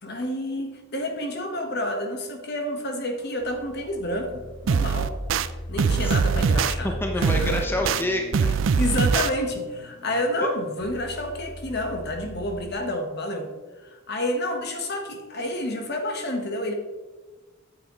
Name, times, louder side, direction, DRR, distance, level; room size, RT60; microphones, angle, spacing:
voice 1, 0.0-5.1 5.7-7.6 8.4-13.5 13.8-16.7, left 1 dB, 55° left, 4 dB, 1.3 m, -29 dB
sound 1, 3.2-12.6, left 1 dB, 90° left, 1.6 m, -39 dB
sound 2, 4.7-5.5 5.8-6.7 7.2-8.0 8.3-9.3, right 6 dB, 70° right, 0.4 m, -22 dB
voice 2, 6.0-6.5 6.8-8.5 10.4-10.5, left 1 dB, 10° left, 2 dB, 0.7 m, -28 dB
9.1 x 7.9 x 3.1 m, 1.3 s
head